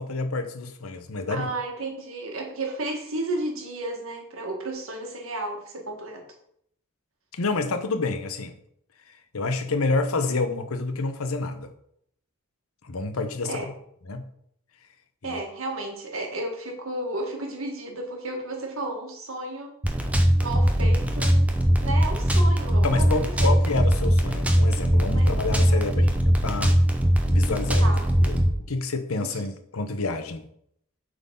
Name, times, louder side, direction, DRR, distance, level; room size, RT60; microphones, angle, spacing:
voice 1, 0.0-1.5 7.3-8.6 9.3-11.7 12.8-13.7 14.1-14.3 15.2-15.4 22.8-26.8 27.3-28.4 28.7-30.4, left 3 dB, 85° left, 0.9 m, -28 dB
voice 2, 1.3-6.2 13.4-13.7 15.2-19.7 20.4-21.5 21.8-23.5 25.1-25.3 25.7-26.1 27.8-28.1 29.1-29.4, right 2 dB, 75° right, 1.7 m, -33 dB
sound 1, 19.8-28.5, equal, 5° right, 0.8 m, -21 dB
7.9 x 4.0 x 5.4 m
head